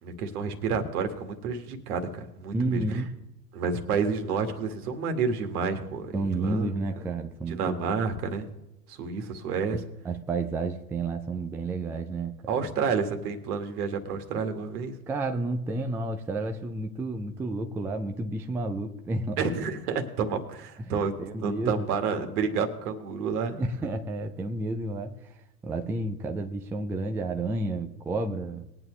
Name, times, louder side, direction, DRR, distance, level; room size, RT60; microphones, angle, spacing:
voice 1, 0.0-2.8 3.5-6.7 7.5-8.5 8.9-9.8 12.5-14.9 19.4-21.1 21.4-23.6, right 5 dB, 65° right, 6 dB, 1.9 m, -29 dB
voice 2, 2.5-3.2 6.1-7.6 9.7-12.4 15.1-19.4 20.9-21.8 23.6-25.3 25.6-28.6, right 2 dB, 5° right, 5 dB, 0.3 m, -31 dB
20.5 x 8.9 x 3.2 m, 0.91 s
hypercardioid pair, 100°, 48 cm